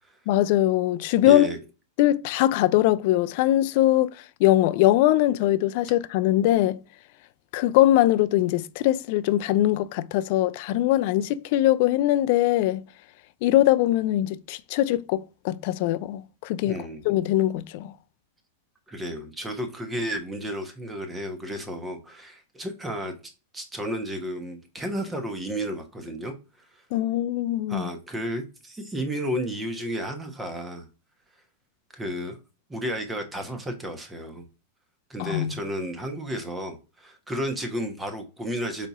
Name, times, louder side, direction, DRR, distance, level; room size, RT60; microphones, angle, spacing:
voice 1, 0.3-1.5 2.0-4.1 4.4-6.8 7.5-12.8 13.4-16.8 17.1-17.9 26.9-27.9 35.2-35.5, left 14 dB, 55° left, 0.3 m, -22 dB
voice 2, 1.3-1.6 16.7-17.1 18.9-23.2 23.5-26.3 27.7-30.9 31.9-32.4 32.7-34.4 35.1-38.9, equal, 10° right, 1.0 m, -32 dB
4.1 x 2.7 x 4.8 m
supercardioid pair, 135°, 0 cm